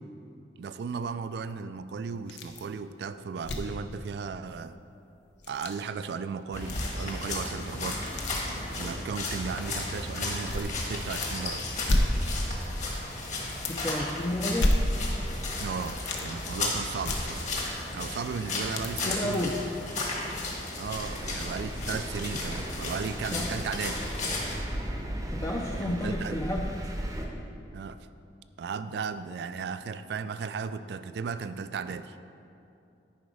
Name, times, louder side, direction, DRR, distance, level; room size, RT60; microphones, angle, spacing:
voice 1, 0.6-4.8 5.5-8.2 8.7-11.7 15.6-17.5 17.9-19.6 20.8-24.0 25.8-26.4 27.7-28.0 28.6-32.2, right 5 dB, 60° right, 12 dB, 0.3 m, -35 dB
sound 1, 2.3-2.7 3.0-3.1 3.4-3.8 5.3-5.7 6.6-7.2 7.5-8.4 9.3-9.4 10.5-11.3 11.6-12.8 13.1-13.2 13.5-14.1 14.5-15.4 15.7-16.3 17.0-17.9 18.3-19.5 20.0-20.1 20.6-20.7, left 1 dB, 80° left, 0.8 m, -30 dB
sound 2, 6.5-24.6, left 2 dB, 40° left, 1.3 m, -34 dB
voice 2, 13.7-14.7 19.0-19.6 23.3-23.6 25.3-26.9, left 1 dB, 15° left, 0 dB, 0.4 m, -31 dB
Thunder, 20.9-27.3, right 1 dB, 20° right, 0.7 m, -36 dB
10.0 x 4.8 x 4.9 m, 2.7 s
head